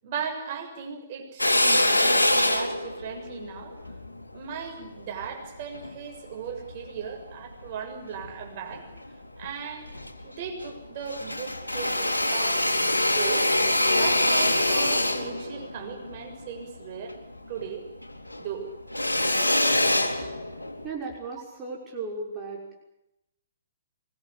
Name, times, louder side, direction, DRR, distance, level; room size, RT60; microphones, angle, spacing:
voice 1, 0.0-3.7 4.3-8.8 9.4-9.9 10.2-12.9 13.2-13.5 14.0-17.2 17.5-17.8 18.4-18.7, right 7 dB, 40° right, 2 dB, 7.0 m, -37 dB
Drill, 1.4-5.9 6.5-7.7 8.1-9.1 9.4-9.5 9.8-10.8 11.0-17.7 18.0-20.9, left 1 dB, 85° left, 3.2 m, -25 dB
voice 2, 20.8-22.8, right 3 dB, 20° right, -3 dB, 6.1 m, -36 dB
25.0 x 21.5 x 8.5 m, 0.88 s
figure-of-eight pair, 125°, 0 cm